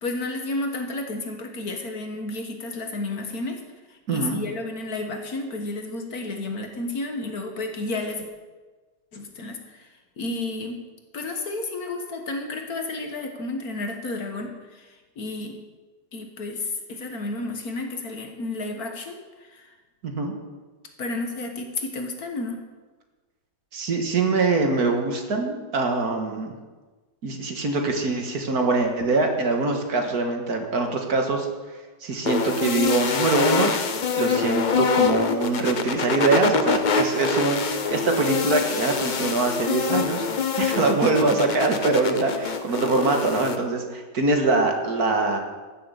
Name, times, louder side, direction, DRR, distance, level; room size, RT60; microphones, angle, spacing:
voice 1, 0.0-3.6 3.9-8.2 9.1-9.9 10.2-10.8 11.1-15.6 16.1-19.7 21.0-22.6, left 2 dB, 55° left, 4 dB, 1.8 m, -31 dB
voice 2, 4.1-4.4 20.0-20.3 23.7-26.5 27.2-31.5 32.0-33.7 34.1-40.3 40.6-45.4, right 3 dB, 55° right, 3 dB, 2.0 m, -23 dB
sound 1, 32.2-43.6, left 5 dB, 80° left, 0.4 m, -25 dB
15.0 x 7.4 x 6.9 m, 1.3 s
omnidirectional pair, 2.0 m